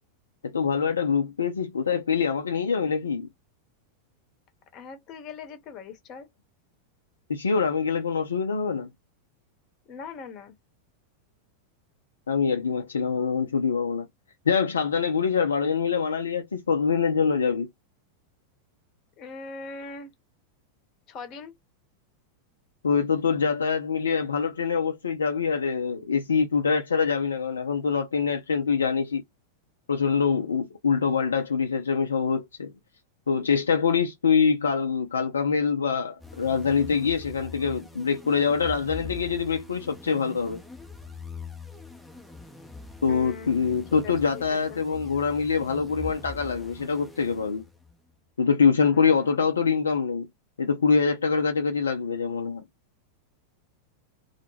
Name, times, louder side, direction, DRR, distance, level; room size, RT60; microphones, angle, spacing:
voice 1, 0.4-3.3 7.3-8.9 12.3-14.1 14.5-17.7 22.8-29.2 29.9-32.7 33.3-40.6 43.0-47.6 48.4-50.3 50.6-52.6, left 5 dB, 70° left, 0.4 m, -24 dB
voice 2, 4.7-6.3 9.9-10.6 19.2-20.1 21.1-21.5 43.1-43.6 43.9-44.8 48.9-49.5, left 5 dB, 35° left, 0.8 m, -41 dB
sound 1, 36.2-48.0, left 4 dB, ahead, 0.5 m, -43 dB
2.2 x 2.0 x 3.0 m
figure-of-eight pair, 90°, 0 cm